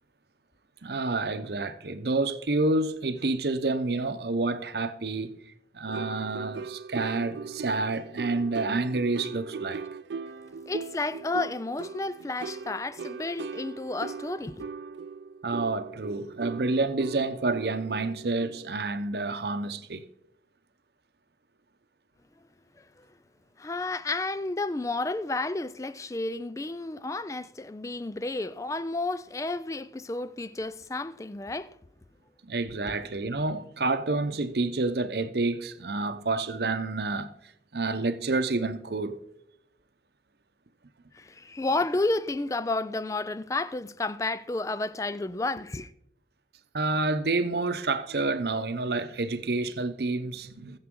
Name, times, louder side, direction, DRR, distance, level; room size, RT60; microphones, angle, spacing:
voice 1, 0.8-5.4 5.7-9.8 15.4-20.1 32.4-37.3 37.7-39.2 46.7-50.8, right 3 dB, 65° right, 0.8 m, -29 dB
sound 1, 5.9-18.8, right 5 dB, 85° right, 0.4 m, -39 dB
voice 2, 10.7-14.6 23.6-31.7 32.9-33.0 41.1-45.9, left 2 dB, 20° left, 0.3 m, -31 dB
20.5 x 7.3 x 3.7 m
head